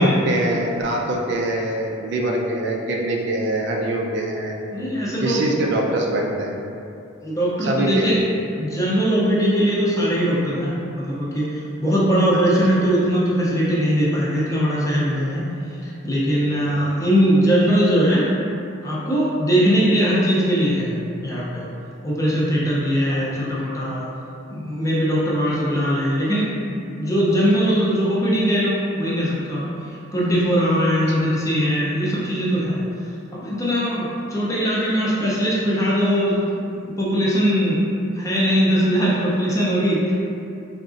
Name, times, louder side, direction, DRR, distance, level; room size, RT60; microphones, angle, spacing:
voice 1, 0.0-4.6 5.2-6.5 7.6-8.1 16.5-16.8 23.1-23.2 31.1-31.2, right 1 dB, 55° right, 0 dB, 0.3 m, -24 dB
voice 2, 4.7-5.4 7.2-8.2 8.5-15.5 15.8-18.3 18.8-20.9 21.2-21.7 22.0-24.1 24.5-26.5 27.0-29.6 30.1-32.8 33.3-37.9 38.1-40.1, equal, 15° left, -6 dB, 0.5 m, -20 dB
3.8 x 2.4 x 2.4 m, 2.6 s
head